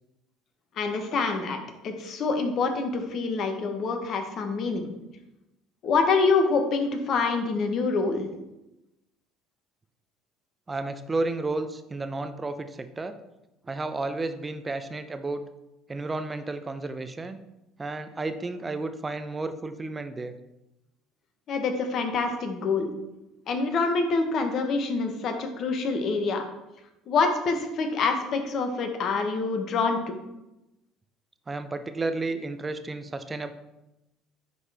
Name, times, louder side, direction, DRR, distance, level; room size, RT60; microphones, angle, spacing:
voice 1, 0.8-4.9 5.8-8.3 21.5-22.9 23.5-26.4 27.1-30.2, left 4 dB, 55° left, 6 dB, 1.2 m, -26 dB
voice 2, 10.7-13.1 13.7-15.4 15.9-17.4 17.8-20.3 31.5-33.5, right 2 dB, 25° right, 9 dB, 0.8 m, -32 dB
9.8 x 4.1 x 3.5 m, 0.95 s
hypercardioid pair, 65°, 0 cm